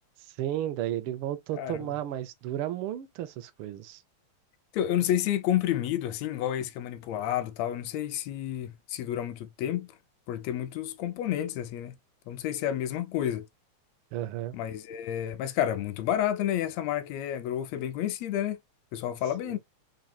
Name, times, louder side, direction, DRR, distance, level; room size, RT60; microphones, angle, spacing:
voice 1, 0.4-4.0 14.1-14.5 19.4-19.6, right 12 dB, 85° right, 1.2 m, -33 dB
voice 2, 4.7-9.9 10.3-11.9 12.3-13.5 14.5-18.6 18.9-19.6, left 11 dB, 75° left, 1.7 m, -30 dB
4.5 x 3.8 x 2.4 m
omnidirectional pair, 3.3 m